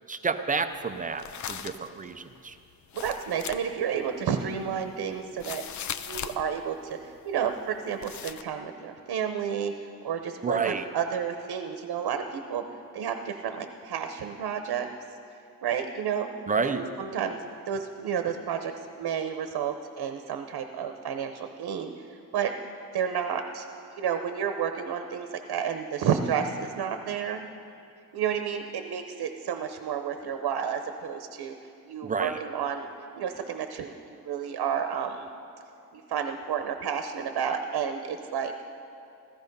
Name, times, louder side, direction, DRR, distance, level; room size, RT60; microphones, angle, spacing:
voice 1, 0.1-2.6 10.4-10.8 16.5-16.9 32.0-32.4, right 5 dB, 20° right, 9 dB, 0.5 m, -29 dB
sound 1, 0.7-6.5 6.9-7.2 7.4-7.8 8.0-8.4, left 9 dB, 50° left, 0.5 m, -38 dB
voice 2, 2.9-5.6 6.0-7.0 7.2-9.7 10.0-12.6 12.9-14.9 15.6-16.3 16.6-17.4 17.7-21.9 22.3-22.5 22.9-23.7 24.0-27.4 28.1-31.5 31.8-32.9 33.2-33.9 34.2-35.3 35.9-38.5, right 7 dB, 85° right, 6 dB, 0.9 m, -31 dB
15.0 x 14.0 x 5.4 m, 2.7 s
wide cardioid pair, 180°, 38 cm